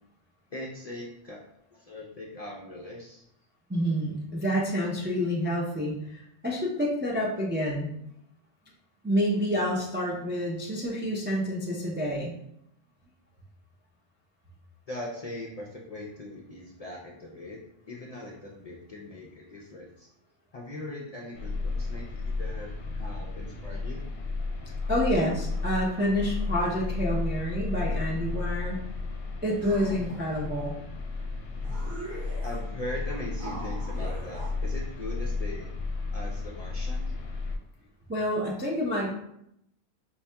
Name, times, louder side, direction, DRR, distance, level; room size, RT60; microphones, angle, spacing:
voice 1, 0.5-1.4 1.7-3.2 14.9-17.6 17.9-20.1 20.5-22.7 22.9-24.0 32.4-35.7 36.1-37.1, left 1 dB, 50° left, -3 dB, 0.5 m, -40 dB
voice 2, 3.7-7.9 9.0-12.3 21.7-21.8 24.9-28.8 29.4-30.8 38.1-39.1, equal, 15° right, -4 dB, 0.3 m, -28 dB
sound 1, 21.3-37.6, left 3 dB, 70° left, 0.8 m, -33 dB
sound 2, 29.6-30.5 31.2-31.3 31.5-32.7 33.4-34.5, right 2 dB, 80° right, 1.2 m, -41 dB
4.5 x 2.7 x 2.2 m, 0.77 s
omnidirectional pair, 1.1 m